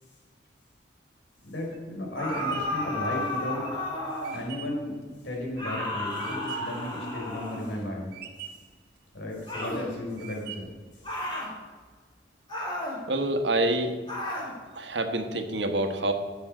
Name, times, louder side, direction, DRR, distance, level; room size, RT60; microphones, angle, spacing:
voice 1, 1.4-3.8 4.3-5.0 5.2-8.1 9.1-10.7, left 1 dB, 85° left, -1 dB, 3.9 m, -34 dB
sound 1, 1.4-6.8 7.3-7.8 8.1-8.8 9.3-9.8 10.2-10.9, right 9 dB, 55° right, 1.1 m, -44 dB
sound 2, 2.2-4.5 5.6-7.8 9.5-9.9 11.0-11.5 12.5-13.0 14.1-14.5, left 1 dB, 25° left, 2.4 m, -33 dB
voice 2, 13.1-13.9 14.7-16.1, right 1 dB, 80° right, 6 dB, 1.3 m, -27 dB
15.5 x 7.2 x 4.9 m, 1.4 s
head